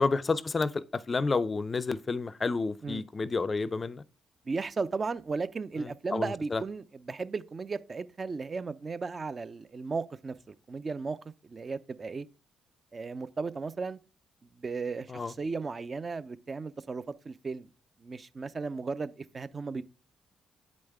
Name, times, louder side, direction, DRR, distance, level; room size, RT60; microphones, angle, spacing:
voice 1, 0.0-4.0 5.8-6.6 15.1-15.3, left 4 dB, 35° left, 0.5 m, -30 dB
voice 2, 4.5-12.3 12.9-14.0 14.4-17.7 18.0-19.8, right 4 dB, 40° right, 0.5 m, -35 dB
7.9 x 5.2 x 3.5 m
hypercardioid pair, 50°, 0 cm